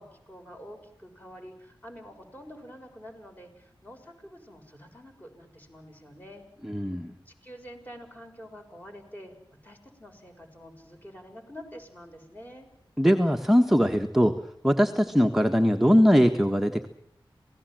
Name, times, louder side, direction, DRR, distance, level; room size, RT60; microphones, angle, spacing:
voice 1, 0.0-6.4 7.3-12.7, equal, 20° left, 3 dB, 6.5 m, -47 dB
voice 2, 6.6-7.1 13.0-14.4 14.6-16.9, equal, 5° right, 4 dB, 1.5 m, -21 dB
27.5 x 18.5 x 7.7 m, 0.68 s
wide cardioid pair, 70°, 9 cm